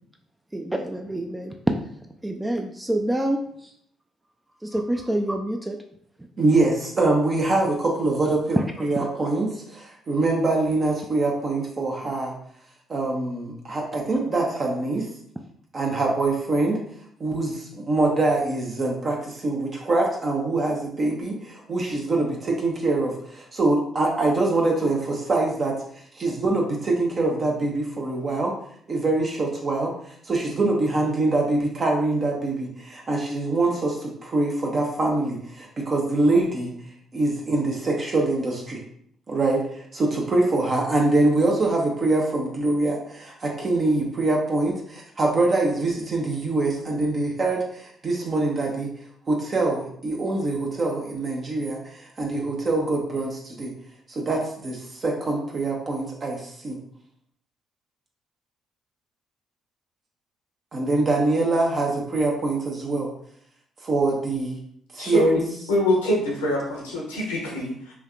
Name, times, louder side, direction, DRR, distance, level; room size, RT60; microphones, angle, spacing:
voice 1, 0.5-1.7 2.2-3.7 4.6-5.8 8.5-8.9, right 1 dB, 15° right, 3 dB, 0.3 m, -26 dB
voice 2, 6.4-12.3 12.9-15.1 15.7-16.8 17.2-25.7 26.1-28.6 28.9-36.7 37.1-38.8 39.3-48.9 49.3-53.7 54.1-56.8 60.7-63.1 63.8-64.6 64.9-65.4, right 2 dB, 45° right, -1 dB, 0.7 m, -24 dB
voice 3, 65.0-65.4 65.7-67.9, left 1 dB, 90° left, -3 dB, 0.8 m, -24 dB
3.2 x 2.3 x 2.4 m, 0.66 s
hypercardioid pair, 50°, 0 cm